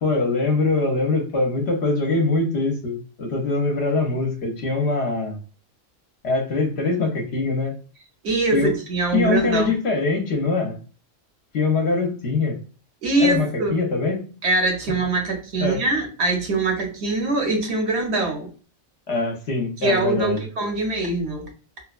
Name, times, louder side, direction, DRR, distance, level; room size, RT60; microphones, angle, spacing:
voice 1, 0.0-5.4 6.2-7.8 8.5-8.7 9.1-10.8 11.5-12.6 13.2-14.3 15.6-15.8 19.1-20.4, left 3 dB, 60° left, 2 dB, 0.8 m, -23 dB
voice 2, 8.2-9.7 13.0-13.8 14.4-18.5 19.8-21.5, right 2 dB, 65° right, 2 dB, 0.9 m, -23 dB
2.9 x 2.1 x 2.3 m, 0.37 s
omnidirectional pair, 1.3 m